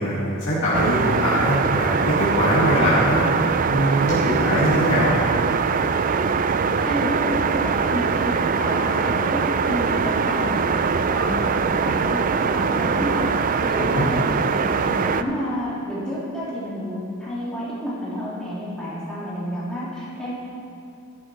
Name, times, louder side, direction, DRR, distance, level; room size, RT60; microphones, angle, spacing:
voice 1, 0.0-3.3 3.7-5.1 13.8-14.1, equal, 60° left, -9 dB, 2.3 m, -22 dB
sound 1, 0.7-15.2, right 5 dB, 35° right, 0.3 m, -22 dB
voice 2, 6.8-13.3 13.7-20.3, equal, 5° left, -10 dB, 3.5 m, -30 dB
12.0 x 11.0 x 4.7 m, 2.6 s
head